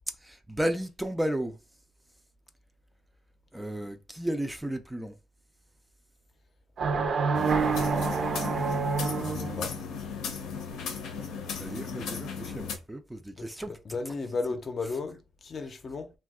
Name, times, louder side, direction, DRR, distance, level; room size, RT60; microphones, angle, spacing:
voice 1, 0.2-1.6 3.5-5.1 11.6-14.4 14.8-15.0, right 1 dB, 10° right, 0.4 m, -34 dB
sound 1, 6.8-9.6, right 5 dB, 55° right, 0.5 m, -27 dB
sound 2, 7.3-12.8, left 6 dB, 85° left, 0.6 m, -36 dB
voice 2, 9.1-9.8 13.4-16.1, left 3 dB, 45° left, 0.5 m, -35 dB
2.7 x 2.3 x 3.5 m
cardioid pair, 90°, 0 cm